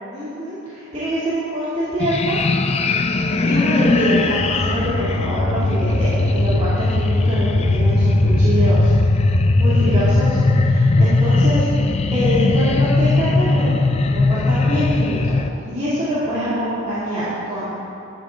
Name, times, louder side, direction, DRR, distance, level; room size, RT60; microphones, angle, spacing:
voice 1, 0.1-2.4 3.4-8.9 9.5-11.6 12.1-13.8 14.1-15.4 15.7-17.8, equal, 30° right, -13 dB, 2.6 m, -24 dB
sound 1, 2.0-15.5, left 2 dB, 30° left, 0.4 m, -18 dB
12.5 x 10.5 x 3.8 m, 2.8 s
head